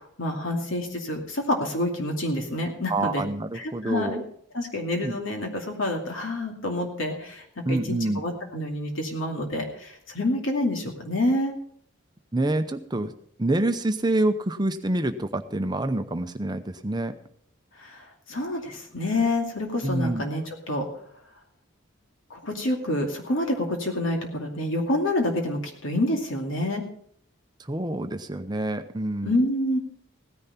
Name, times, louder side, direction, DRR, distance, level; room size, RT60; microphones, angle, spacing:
voice 1, 0.0-3.2 3.5-4.2 4.5-11.5 17.8-20.9 22.3-26.8 29.2-29.8, left 1 dB, 70° left, 2 dB, 2.5 m, -28 dB
voice 2, 2.9-4.3 5.0-5.2 7.6-8.2 12.3-13.1 13.4-17.2 19.8-20.3 27.6-29.4, right 1 dB, 20° right, 9 dB, 0.7 m, -27 dB
16.5 x 10.5 x 4.3 m, 0.64 s
head